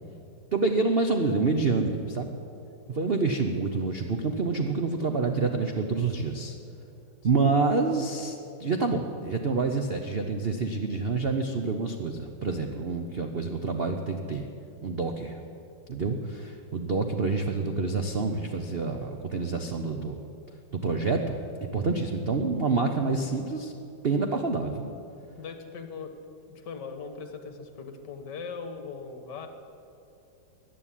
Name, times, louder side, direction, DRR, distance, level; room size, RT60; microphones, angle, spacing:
voice 1, 0.5-2.3 2.9-6.5 7.2-14.5 14.8-15.4 15.9-20.2 20.7-21.4 21.7-23.7 24.0-24.9, right 4 dB, 65° right, 5 dB, 0.5 m, -27 dB
voice 2, 2.9-3.2 7.3-7.5 24.1-24.4 25.4-26.1 26.5-29.5, left 5 dB, 60° left, 7 dB, 1.8 m, -40 dB
14.5 x 10.0 x 10.0 m, 2.8 s
omnidirectional pair, 2.3 m